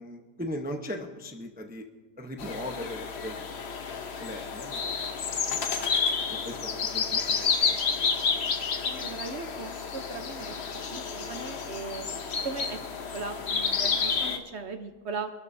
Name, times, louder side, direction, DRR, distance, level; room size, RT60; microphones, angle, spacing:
voice 1, 0.0-1.8 2.2-3.4 4.2-4.8 5.5-5.6 6.3-7.8, left 1 dB, 10° right, 3 dB, 0.4 m, -38 dB
sound 1, 2.4-14.4, left 5 dB, 50° left, 0.9 m, -30 dB
voice 2, 8.8-10.6 10.9-12.1 12.4-12.8 13.1-15.3, right 4 dB, 50° right, 6 dB, 0.9 m, -38 dB
25.0 x 12.0 x 2.7 m, 1.3 s
omnidirectional pair, 1.9 m